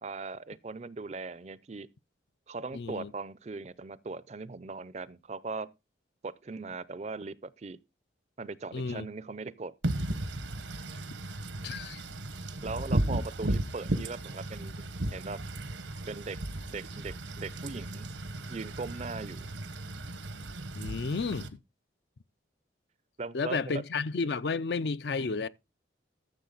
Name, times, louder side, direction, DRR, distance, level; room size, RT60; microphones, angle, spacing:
voice 1, 0.0-1.9 2.5-5.7 6.2-7.8 8.4-9.8 12.6-14.8 15.1-15.4 16.1-16.4 16.7-18.1 18.5-19.5 23.2-23.8, right 3 dB, 35° right, 0.5 m, -39 dB
voice 2, 2.7-3.1 8.7-9.1 11.6-12.0 20.7-21.6 23.3-25.5, left 4 dB, 65° left, 0.5 m, -32 dB
Wind / Rain, 9.8-21.5, right 1 dB, 90° right, 1.3 m, -35 dB
13.5 x 7.1 x 3.9 m
head